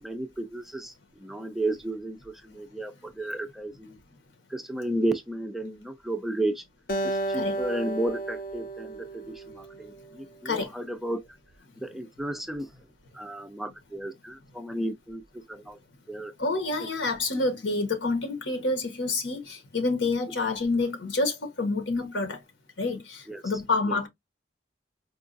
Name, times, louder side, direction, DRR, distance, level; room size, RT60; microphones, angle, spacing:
voice 1, 0.0-4.0 4.5-6.6 7.0-11.2 11.8-12.7 13.1-15.8 16.1-16.3 16.8-16.9 23.3-23.4 23.9-24.0, right 1 dB, ahead, 0.3 m, -33 dB
Acoustic guitar, 6.9-10.2, right 1 dB, 55° left, 0.6 m, -33 dB
voice 2, 16.4-22.4 22.8-24.1, left 3 dB, 85° left, 1.2 m, -28 dB
4.5 x 2.3 x 2.5 m
head